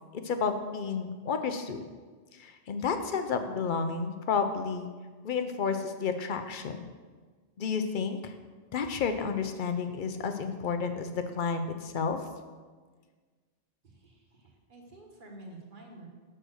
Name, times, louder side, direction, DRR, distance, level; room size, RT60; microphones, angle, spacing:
voice 1, 0.1-1.8 2.3-4.9 5.2-6.9 7.6-8.3 8.7-12.2, left 5 dB, 55° left, 7 dB, 0.6 m, -31 dB
voice 2, 13.8-16.1, right 2 dB, 50° right, 0 dB, 1.3 m, -50 dB
6.7 x 4.4 x 6.2 m, 1.5 s
omnidirectional pair, 1.1 m